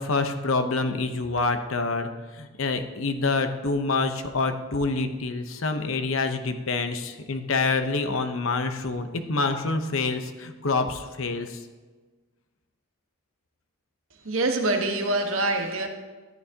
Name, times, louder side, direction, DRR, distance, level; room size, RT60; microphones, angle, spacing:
voice 1, 0.0-11.6, left 3 dB, 70° left, 0.9 m, -27 dB
voice 2, 14.2-15.9, right 2 dB, 75° right, 1.3 m, -25 dB
13.5 x 11.0 x 2.9 m
head